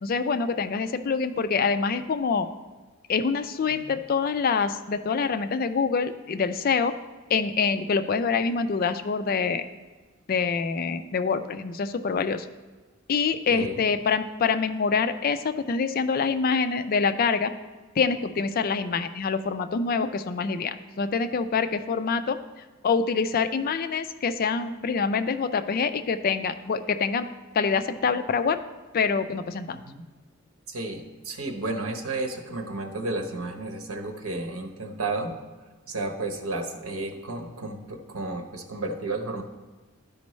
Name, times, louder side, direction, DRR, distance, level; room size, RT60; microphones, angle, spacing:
voice 1, 0.0-2.5 3.1-6.9 7.3-9.7 10.3-12.5 13.1-17.5 18.0-22.4 22.8-27.3 27.5-28.6 28.9-29.8, left 5 dB, 45° left, 10 dB, 0.3 m, -25 dB
voice 2, 13.5-13.8 29.7-30.0 30.7-35.3 35.9-39.4, right 2 dB, 85° right, 3 dB, 1.0 m, -32 dB
12.5 x 5.2 x 3.1 m, 1.3 s
head